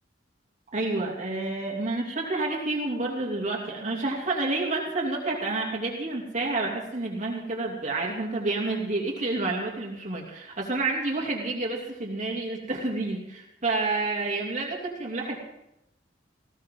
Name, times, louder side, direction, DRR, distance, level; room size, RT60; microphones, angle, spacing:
voice 1, 0.7-15.4, right 2 dB, 45° right, -1 dB, 3.1 m, -29 dB
20.0 x 16.5 x 3.9 m, 0.84 s
head